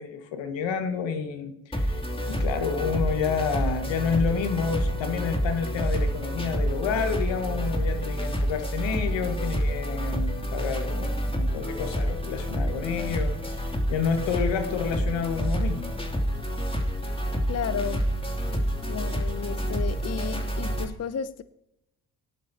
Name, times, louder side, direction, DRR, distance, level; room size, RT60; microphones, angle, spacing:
voice 1, 0.0-16.0, left 6 dB, 75° left, 1.8 m, -30 dB
sound 1, 1.7-20.8, equal, 10° left, 2.8 m, -28 dB
voice 2, 17.5-18.0 18.9-21.4, left 7 dB, 35° left, 0.7 m, -33 dB
18.0 x 11.5 x 2.9 m
hypercardioid pair, 50°, 45 cm